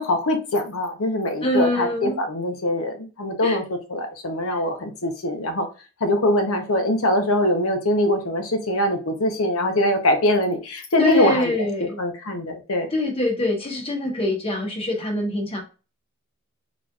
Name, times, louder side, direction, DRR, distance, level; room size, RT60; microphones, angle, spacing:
voice 1, 0.0-5.7 6.0-11.7 12.0-12.9, left 1 dB, 70° left, 5 dB, 0.9 m, -23 dB
voice 2, 1.4-2.2 3.4-3.6 4.5-4.6 11.0-12.0 12.9-15.6, left 1 dB, 25° left, 2 dB, 1.1 m, -24 dB
4.0 x 3.1 x 2.4 m, 0.32 s
head